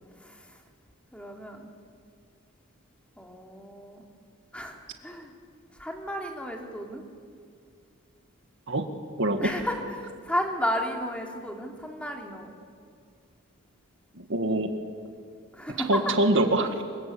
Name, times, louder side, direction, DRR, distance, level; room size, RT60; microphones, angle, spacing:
voice 1, 1.1-1.7 3.2-4.0 4.5-4.8 5.0-5.3 5.8-7.0 9.4-12.5 15.5-16.1, equal, 5° left, 2 dB, 2.8 m, -33 dB
voice 2, 9.2-9.5 14.2-14.7 15.9-16.8, right 1 dB, 60° right, 6 dB, 1.8 m, -24 dB
26.0 x 23.0 x 8.6 m, 2.2 s
head